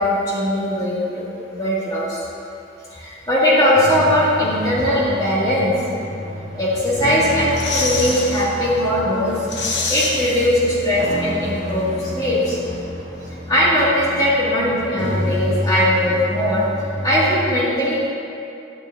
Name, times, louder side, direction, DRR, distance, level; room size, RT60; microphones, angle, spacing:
voice 1, 0.0-2.3 2.9-5.7 6.5-9.4 9.7-12.6 13.5-16.7 17.0-18.1, left 1 dB, 20° left, -8 dB, 2.4 m, -19 dB
sound 1, 3.7-17.5, equal, 75° right, 2.0 m, -30 dB
sound 2, 7.2-8.5 8.9-9.0 9.3-11.0 11.3-11.4, left 3 dB, 75° left, 1.1 m, -26 dB
10.5 x 10.0 x 2.8 m, 2.7 s
head